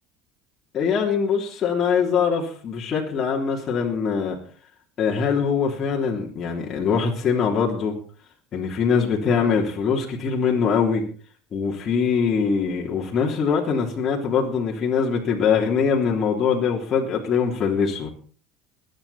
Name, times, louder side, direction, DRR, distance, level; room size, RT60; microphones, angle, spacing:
voice 1, 0.7-4.4 5.0-8.0 8.5-11.0 11.5-18.1, left 6 dB, 40° left, -2 dB, 3.4 m, -22 dB
21.5 x 9.5 x 4.3 m, 0.41 s
supercardioid pair, 100°, 0 cm